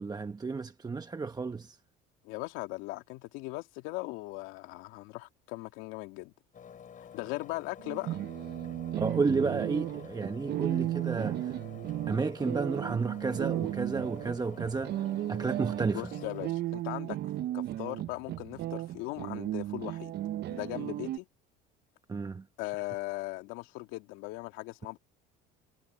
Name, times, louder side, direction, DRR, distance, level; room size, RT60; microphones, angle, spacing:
voice 1, 0.0-1.8 9.0-11.6 12.1-15.0 15.3-16.0 22.1-22.4, right 4 dB, 20° right, 1.0 m, -32 dB
voice 2, 2.2-6.3 7.0-8.2 15.9-17.2 17.5-20.1 20.5-21.3 22.6-25.0, left 21 dB, 80° left, 2.7 m, -39 dB
Engine, 6.5-16.5, left 8 dB, 40° left, 6.3 m, -50 dB
sound 1, 7.8-21.2, right 14 dB, 55° right, 0.8 m, -35 dB
supercardioid pair, 95°, 20 cm